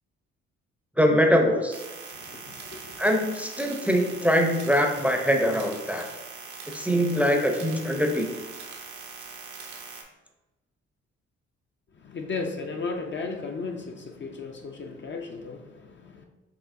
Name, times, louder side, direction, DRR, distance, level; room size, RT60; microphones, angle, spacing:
voice 1, 1.0-1.8 3.0-6.1 6.7-8.3, equal, 5° right, 3 dB, 0.6 m, -23 dB
sound 1, 1.7-10.0, right 5 dB, 70° right, 0.8 m, -42 dB
voice 2, 2.1-3.0 3.8-4.0 11.9-16.3, left 4 dB, 40° left, 3 dB, 0.5 m, -35 dB
4.9 x 3.0 x 2.6 m, 1.1 s
supercardioid pair, 60°, 30 cm